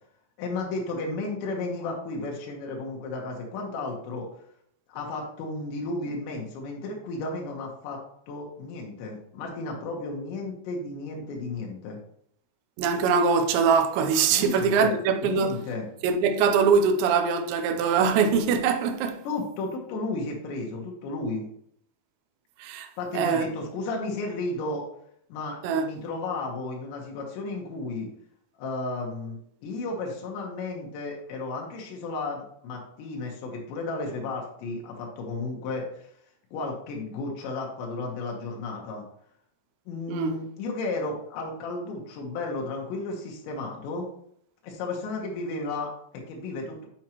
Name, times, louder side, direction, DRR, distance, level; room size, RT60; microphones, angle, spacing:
voice 1, 0.4-4.3 4.9-8.0 8.3-12.0 14.3-15.0 15.2-15.9 19.3-21.5 23.0-24.9 25.3-28.1 28.6-36.1 36.5-39.1 39.9-44.1 44.6-46.9, left 3 dB, 85° left, 3.5 m, -33 dB
voice 2, 12.8-15.6 16.0-19.2 22.6-22.9 23.1-23.5 25.6-25.9 40.1-40.4, right 5 dB, 90° right, 3.0 m, -23 dB
8.1 x 5.9 x 3.0 m
omnidirectional pair, 5.0 m